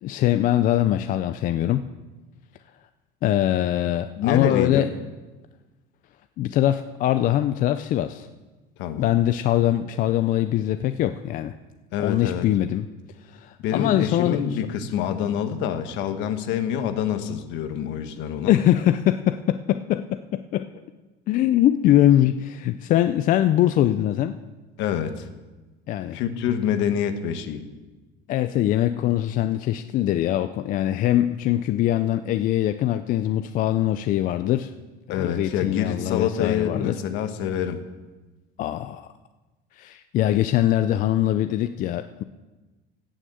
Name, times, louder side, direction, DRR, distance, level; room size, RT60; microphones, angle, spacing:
voice 1, 0.0-1.8 3.2-4.9 6.4-8.3 9.0-11.5 12.0-12.9 13.3-14.6 18.5-20.7 21.3-24.3 25.9-26.2 28.3-34.7 35.1-36.9 38.6-39.1 39.8-42.2, left 12 dB, 40° left, 10 dB, 0.4 m, -22 dB
voice 2, 4.2-4.9 8.8-9.1 11.9-12.5 13.6-18.5 24.8-25.3 26.1-27.7 35.1-37.8, left 9 dB, 65° left, 8 dB, 1.3 m, -26 dB
16.5 x 6.4 x 7.7 m, 1.2 s
cardioid pair, 160°, 20 cm